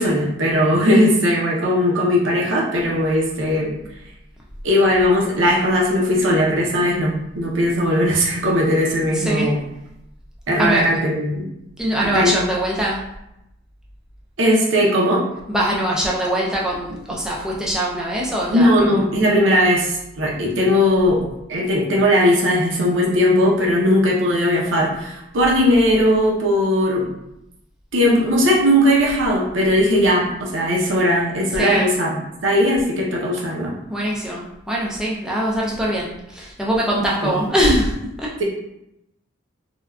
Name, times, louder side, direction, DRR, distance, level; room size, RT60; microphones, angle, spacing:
voice 1, 0.0-3.7 4.6-9.5 10.5-11.4 12.1-12.4 14.4-15.2 18.5-21.2 21.5-27.0 27.9-32.1 32.4-33.7 37.2-37.3, equal, 70° right, -2 dB, 0.6 m, -18 dB
voice 2, 9.0-9.6 10.6-10.9 11.8-13.0 15.5-19.0 31.5-31.9 33.9-38.3, right 1 dB, 5° right, -5 dB, 0.3 m, -22 dB
3.4 x 2.2 x 2.2 m, 0.85 s
head